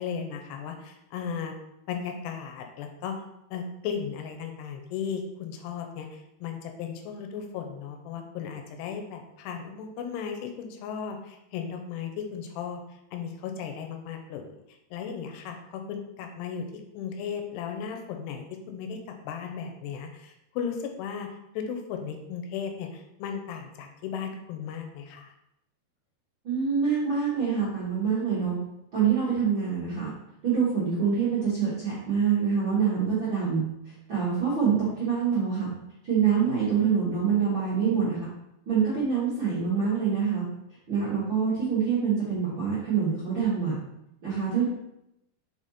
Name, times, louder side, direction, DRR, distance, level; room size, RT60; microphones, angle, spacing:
voice 1, 0.0-1.5 1.9-3.2 3.5-12.8 13.1-14.5 14.9-16.6 16.9-25.3, left 7 dB, 85° left, 5 dB, 2.8 m, -36 dB
voice 2, 26.4-28.6 28.9-30.1 30.4-35.7 36.0-38.3 38.7-40.4 40.9-43.7 44.2-44.7, right 6 dB, 50° right, -9 dB, 1.4 m, -25 dB
5.7 x 4.9 x 4.2 m, 0.85 s
omnidirectional pair, 4.8 m